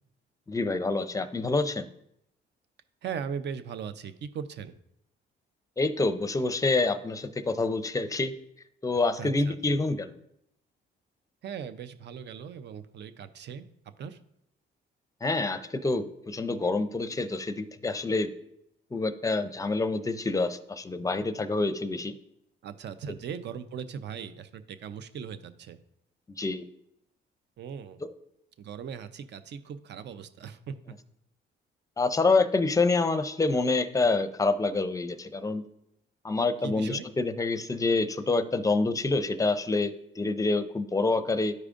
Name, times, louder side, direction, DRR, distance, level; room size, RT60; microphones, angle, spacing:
voice 1, 0.5-1.8 5.8-8.3 8.8-10.2 15.2-18.3 18.9-22.1 26.4-26.6 28.0-28.1 32.0-35.6 36.2-41.5, left 3 dB, 15° left, 10 dB, 0.5 m, -27 dB
voice 2, 3.0-4.7 9.2-9.8 11.4-13.7 14.0-14.2 22.6-25.8 27.6-28.0 28.6-31.0 36.6-37.1, right 7 dB, 60° right, 12 dB, 0.6 m, -39 dB
12.0 x 4.8 x 2.5 m, 0.78 s
cardioid pair, 90°, 20 cm